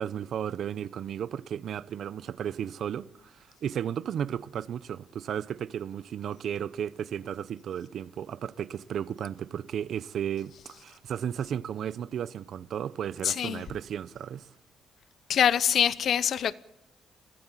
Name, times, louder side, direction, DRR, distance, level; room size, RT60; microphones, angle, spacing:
voice 1, 0.0-14.5, right 9 dB, 65° right, 0.8 m, -34 dB
voice 2, 13.2-13.6 15.3-16.5, left 9 dB, 65° left, 0.8 m, -24 dB
22.5 x 15.0 x 9.1 m
cardioid pair, 90°, 0 cm